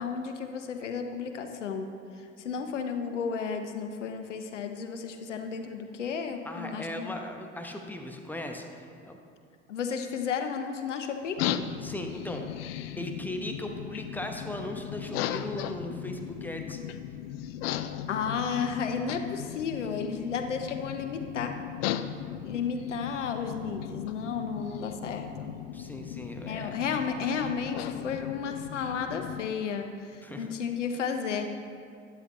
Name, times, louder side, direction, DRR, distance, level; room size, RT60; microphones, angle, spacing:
voice 1, 0.0-1.9 2.4-7.1 9.7-11.4 18.1-21.5 22.4-25.5 26.5-30.1 30.4-31.5, left 6 dB, 75° left, 6 dB, 0.9 m, -33 dB
voice 2, 6.4-9.2 11.8-12.4 13.0-16.8 25.7-26.7 30.2-30.5, left 1 dB, 5° left, 4 dB, 0.9 m, -38 dB
sound 1, 11.4-29.5, left 10 dB, 55° left, 0.5 m, -37 dB
12.0 x 10.5 x 3.1 m, 2.3 s
figure-of-eight pair, 65°, 37 cm